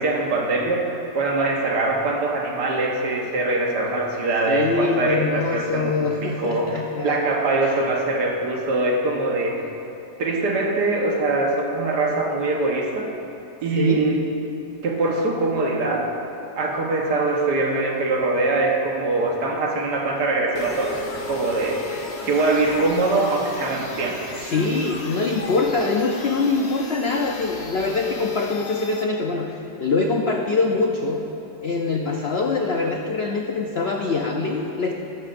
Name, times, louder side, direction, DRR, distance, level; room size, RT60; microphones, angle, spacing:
voice 1, 0.0-5.9 6.2-9.6 10.2-13.1 13.6-14.2 14.8-16.1 16.5-24.3, right 2 dB, 65° right, 0 dB, 1.8 m, -23 dB
voice 2, 4.5-7.2 7.6-7.7 13.8-14.0 24.4-31.2 31.6-34.9, left 3 dB, 90° left, 1 dB, 0.5 m, -24 dB
sound 1, 20.5-29.0, left 3 dB, 45° left, 0.9 m, -36 dB
13.5 x 12.5 x 2.6 m, 2.9 s
omnidirectional pair, 2.0 m